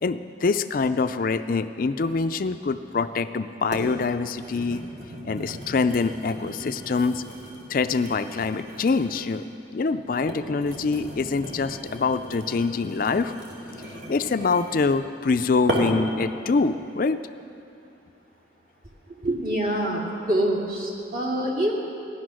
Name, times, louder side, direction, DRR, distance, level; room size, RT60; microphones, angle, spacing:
voice 1, 0.0-4.8 5.2-7.2 7.7-9.4 9.7-13.3 14.1-17.2, left 4 dB, 50° left, 10 dB, 0.4 m, -25 dB
sound 1, 2.9-3.0 3.7-3.9 4.3-9.4 10.1-15.0 15.7-16.1 16.7-16.9, equal, 80° right, 2.5 m, -36 dB
voice 2, 19.2-21.7, right 1 dB, 50° right, -2 dB, 2.4 m, -25 dB
16.0 x 11.0 x 6.2 m, 2.7 s
head